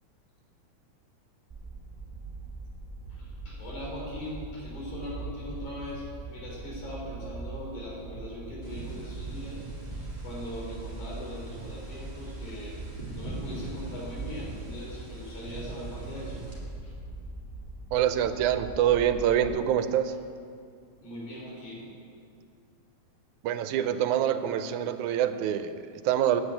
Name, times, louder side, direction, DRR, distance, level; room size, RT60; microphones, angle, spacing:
sound 1, 1.5-19.5, right 3 dB, 30° right, 0.5 m, -41 dB
voice 1, 3.1-12.8 13.1-16.4 16.8-16.9 21.0-21.9, left 1 dB, 85° left, -4 dB, 5.1 m, -40 dB
sound 2, 8.6-16.6, right 2 dB, 15° right, 2.5 m, -45 dB
voice 2, 17.9-20.1 23.4-26.4, right 10 dB, 85° right, 10 dB, 2.0 m, -26 dB
9.8 x 9.5 x 8.7 m, 2.3 s
omnidirectional pair, 3.4 m